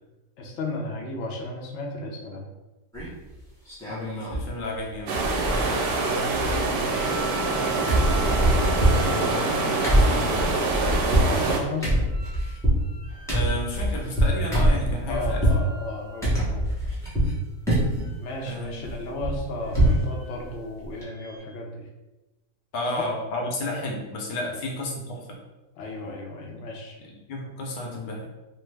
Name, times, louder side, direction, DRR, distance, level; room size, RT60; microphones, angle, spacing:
voice 1, 0.4-2.5 6.1-7.3 9.9-12.0 15.1-16.8 18.2-21.8 22.9-23.0 24.4-24.6 25.8-27.0, left 2 dB, 70° left, 1 dB, 0.7 m, -35 dB
sound 1, 2.9-3.3 3.7-4.5 4.8-4.9 5.1-6.0 6.2-7.6 7.9-15.6 16.2-17.4 17.7-18.1 18.5-20.1 20.4-20.5 20.8-21.0, right 1 dB, 5° left, 0.4 m, -24 dB
voice 2, 3.9-5.2 9.0-11.6 13.3-15.4 18.4-19.0 22.7-25.4 26.5-26.6 27.0-28.3, left 2 dB, 85° left, 0 dB, 1.3 m, -33 dB
sound 2, 5.1-11.6, right 3 dB, 85° right, 1.2 m, -25 dB
sound 3, 5.4-6.4 6.8-11.2 12.1-13.5 14.1-14.7 15.0-17.3 17.9-18.7 19.6-20.6 21.0-21.4, right 1 dB, 40° right, 0.7 m, -43 dB
3.2 x 2.0 x 3.2 m, 1.1 s
omnidirectional pair, 1.8 m